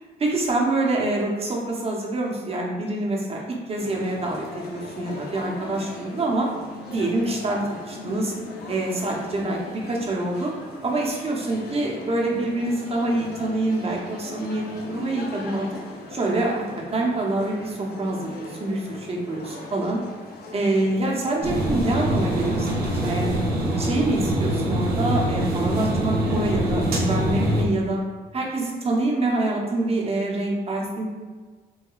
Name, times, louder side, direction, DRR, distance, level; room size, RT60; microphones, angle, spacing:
voice 1, 0.2-6.5 6.9-8.3 8.7-10.5 10.8-15.7 16.1-16.6 16.9-20.0 20.5-23.4 23.8-28.0 28.3-31.1, right 2 dB, 35° right, -2 dB, 0.9 m, -26 dB
sound 1, 3.8-23.2, left 3 dB, 70° left, 0.7 m, -39 dB
sound 2, 21.4-27.6, right 1 dB, 70° right, 0.8 m, -24 dB
4.7 x 2.2 x 2.4 m, 1.4 s
cardioid pair, 80°, 17 cm